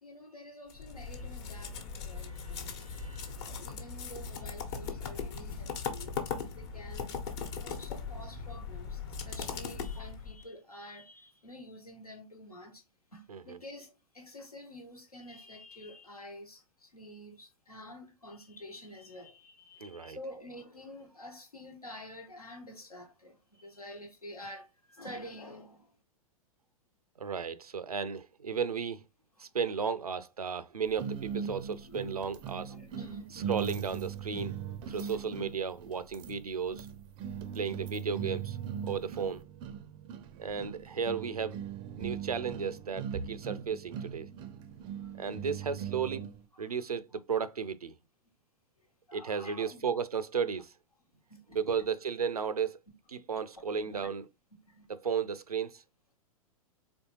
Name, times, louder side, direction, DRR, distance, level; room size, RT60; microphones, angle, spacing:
voice 1, 0.0-6.2 6.5-7.2 7.6-12.9 13.1-26.0 29.6-29.8 31.8-32.2 32.7-33.4 34.8-35.2 45.0-45.1 46.5-46.7 47.1-47.2 49.1-49.8 51.3-51.9 53.6-54.1 54.7-54.9, left 1 dB, 85° left, 1.2 m, -49 dB
sound 1, 0.7-10.4, left 5 dB, 45° left, 1.0 m, -39 dB
voice 2, 19.8-20.2 27.2-29.0 29.4-32.7 33.3-34.6 34.9-36.9 37.6-38.6 38.8-39.4 40.4-41.6 42.0-44.3 45.2-46.2 46.6-47.9 49.1-50.7 51.5-52.8 53.1-54.2 54.9-55.8, right 6 dB, 80° right, 0.5 m, -34 dB
sound 2, 31.0-46.4, right 8 dB, 25° right, 0.4 m, -40 dB
4.3 x 3.2 x 2.9 m
figure-of-eight pair, 100°, 19 cm